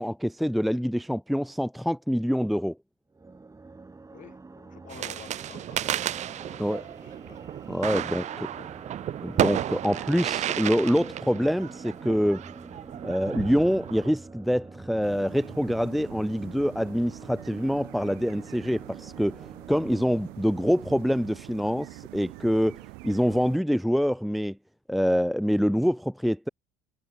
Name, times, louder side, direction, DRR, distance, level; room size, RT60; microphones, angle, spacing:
voice 1, 0.0-2.8 6.6-6.8 7.7-8.2 9.2-12.4 13.0-24.6 24.9-26.5, equal, ahead, 0.7 m, -25 dB
sound 1, 3.1-20.4, right 3 dB, 20° right, 3.1 m, -47 dB
voice 2, 4.1-7.5 8.2-8.7, left 10 dB, 50° left, 3.2 m, -51 dB
sound 2, 4.9-14.1, right 11 dB, 45° right, 0.5 m, -32 dB
sound 3, 15.0-23.6, right 30 dB, 75° right, 2.7 m, -45 dB
hypercardioid pair, 75°, 17 cm